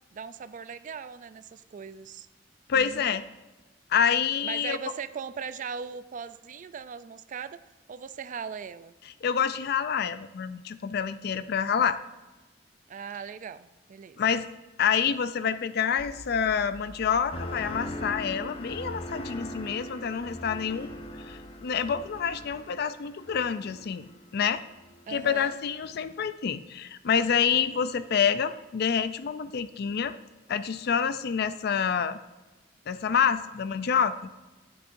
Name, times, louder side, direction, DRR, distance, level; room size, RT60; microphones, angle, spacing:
voice 1, 0.1-2.3 2.7-3.2 4.4-7.6 7.9-8.9 12.9-14.2 25.1-25.6, right 6 dB, 45° right, 14 dB, 0.4 m, -39 dB
voice 2, 2.7-3.2 3.9-4.8 9.2-12.0 14.2-14.5 14.8-20.9 21.3-24.6 25.1-30.1 30.5-32.2 32.9-34.3, left 7 dB, 55° left, 13 dB, 0.4 m, -27 dB
sound 1, 16.0-22.5, left 1 dB, 80° left, 2.3 m, -51 dB
sound 2, 17.3-24.4 24.8-25.3, left 1 dB, 30° left, 0.7 m, -40 dB
12.0 x 8.7 x 2.6 m, 1.1 s
head